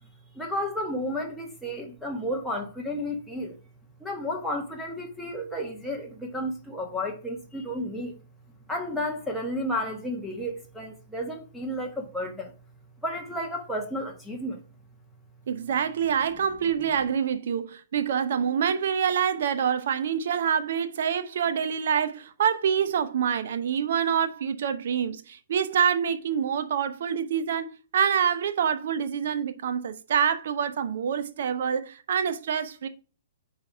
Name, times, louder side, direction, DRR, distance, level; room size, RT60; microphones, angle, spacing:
voice 1, 0.3-3.6 4.0-8.1 8.7-12.5 13.0-14.6, left 1 dB, ahead, 1.1 m, -32 dB
voice 2, 15.5-32.9, right 8 dB, 65° right, 0.8 m, -26 dB
5.4 x 4.1 x 6.0 m
hypercardioid pair, 135°, 0 cm